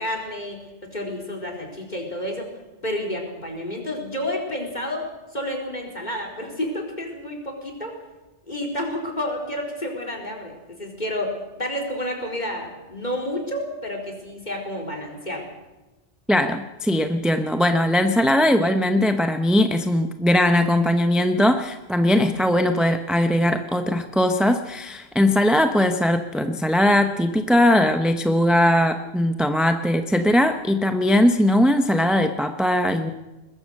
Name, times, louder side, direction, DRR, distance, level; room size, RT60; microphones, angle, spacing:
voice 1, 0.0-2.5 2.8-8.0 8.5-15.4, left 1 dB, 40° left, 0 dB, 4.6 m, -30 dB
voice 2, 16.3-33.1, left 1 dB, ahead, 7 dB, 0.8 m, -20 dB
22.0 x 21.0 x 6.5 m, 1.1 s
omnidirectional pair, 1.2 m